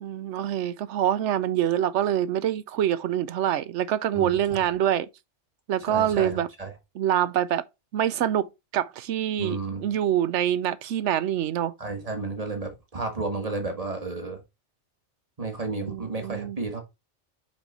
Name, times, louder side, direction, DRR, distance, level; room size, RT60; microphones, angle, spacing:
voice 1, 0.0-5.1 5.7-6.5 7.0-7.6 7.9-8.5 8.7-11.7 15.8-16.6, right 11 dB, 80° right, 0.9 m, -25 dB
voice 2, 4.1-4.7 5.8-6.7 9.4-9.9 11.8-14.4 15.4-16.8, right 3 dB, 30° right, 1.6 m, -32 dB
5.2 x 4.8 x 4.2 m
omnidirectional pair, 1.2 m